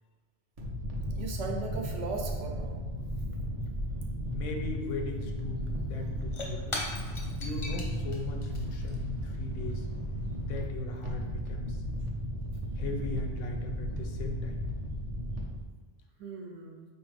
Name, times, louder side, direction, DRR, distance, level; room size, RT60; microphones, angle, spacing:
sound 1, 0.6-15.6, equal, 45° right, 0.5 m, -35 dB
voice 1, 1.1-2.8 16.2-16.9, right 3 dB, 75° right, 1 dB, 1.0 m, -38 dB
voice 2, 4.3-6.9 7.4-9.9 10.4-11.8 12.7-14.6, left 3 dB, 85° left, 3 dB, 0.9 m, -38 dB
Shatter / Crushing, 5.4-5.5 5.7-10.6, left 2 dB, 40° left, 0.5 m, -42 dB
4.3 x 2.5 x 3.2 m, 1.4 s
omnidirectional pair, 1.3 m